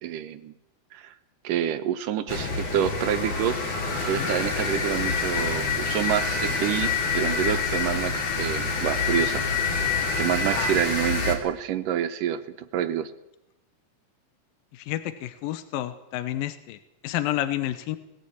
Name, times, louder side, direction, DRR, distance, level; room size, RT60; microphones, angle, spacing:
voice 1, 0.0-0.5 0.9-1.1 1.4-3.6 4.1-9.4 9.8-9.9 10.2-12.4 12.7-13.1, right 10 dB, 75° right, 9 dB, 2.4 m, -27 dB
sound 1, 2.3-11.4, left 4 dB, 50° left, 3.7 m, -27 dB
voice 2, 14.7-18.0, left 13 dB, 85° left, 11 dB, 2.6 m, -30 dB
19.5 x 15.0 x 8.7 m, 0.90 s
omnidirectional pair, 4.1 m